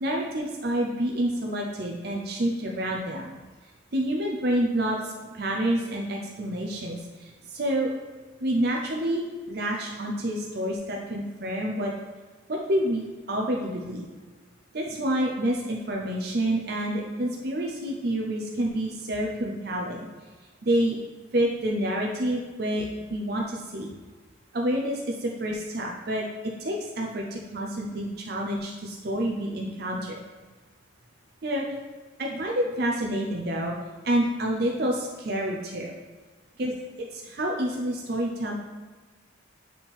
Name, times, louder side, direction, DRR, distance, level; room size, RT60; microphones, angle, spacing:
voice 1, 0.0-3.3 3.9-7.9 8.4-11.9 12.5-14.1 14.7-20.0 20.6-21.0 21.3-23.9 24.5-26.3 26.6-30.2 31.4-31.7 32.2-33.7 34.0-35.9 36.6-36.7 37.0-38.6, right 1 dB, 55° right, 0 dB, 0.6 m, -28 dB
7.6 x 4.3 x 3.5 m, 1.4 s
head